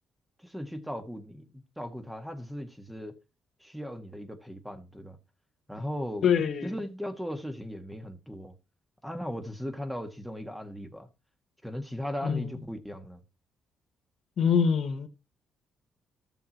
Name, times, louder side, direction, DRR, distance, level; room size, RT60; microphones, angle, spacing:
voice 1, 0.4-3.1 3.6-5.2 5.7-6.2 6.6-8.5 9.0-11.1 11.6-13.2, equal, 5° right, 1.6 m, -37 dB
voice 2, 6.2-6.7 12.2-12.5 14.4-15.1, left 7 dB, 65° left, 1.3 m, -24 dB
13.5 x 7.2 x 3.0 m
cardioid pair, 90°, 0 cm